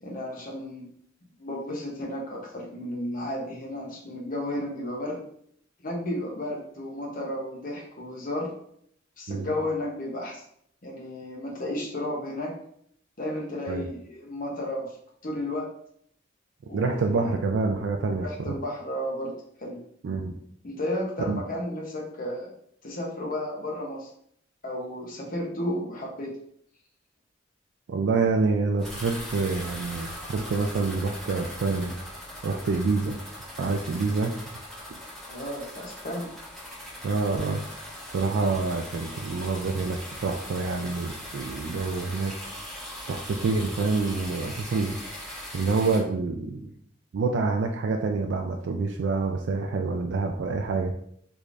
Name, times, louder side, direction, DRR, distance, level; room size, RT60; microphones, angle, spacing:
voice 1, 0.0-0.9 1.4-5.2 5.8-8.5 9.2-10.4 10.8-12.5 13.2-14.9 15.2-15.7 16.7-17.3 18.1-19.8 20.6-22.5 22.8-24.1 24.6-26.3 35.3-36.3, left 1 dB, 50° left, -2 dB, 0.9 m, -33 dB
voice 2, 16.7-18.6 20.0-20.3 21.3-21.4 27.9-31.9 32.4-33.2 33.6-34.4 37.0-42.3 43.1-45.0 45.5-46.7 47.1-50.9, right 4 dB, 70° right, 3 dB, 0.3 m, -27 dB
sound 1, 28.8-46.0, equal, ahead, 1.1 m, -40 dB
3.5 x 3.1 x 2.5 m, 0.68 s
head